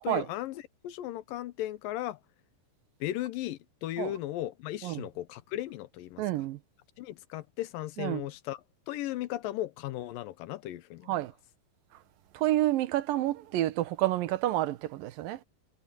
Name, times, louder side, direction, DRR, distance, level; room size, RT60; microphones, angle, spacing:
voice 1, 0.0-2.2 3.0-6.2 7.0-8.6 8.9-11.1, left 14 dB, 85° left, 2.6 m, -36 dB
voice 2, 6.2-6.6 8.0-8.3 11.1-11.3 12.3-15.4, right 15 dB, 85° right, 2.8 m, -29 dB
omnidirectional pair, 4.0 m